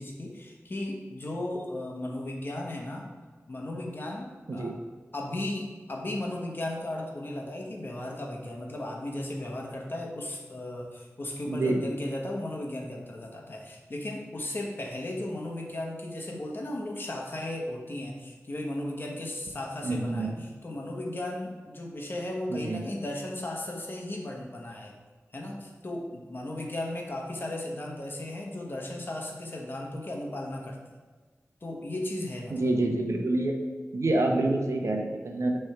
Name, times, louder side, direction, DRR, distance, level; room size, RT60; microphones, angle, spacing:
voice 1, 0.0-3.1 3.5-4.7 5.1-24.9 25.3-30.8 31.6-32.7, left 1 dB, 45° left, -1 dB, 1.2 m, -35 dB
voice 2, 11.5-11.8 19.8-20.4 22.5-22.8 32.5-33.6 33.9-35.6, right 2 dB, 70° right, 2 dB, 0.8 m, -27 dB
6.6 x 3.5 x 5.7 m, 1.4 s
wide cardioid pair, 90°, 5 cm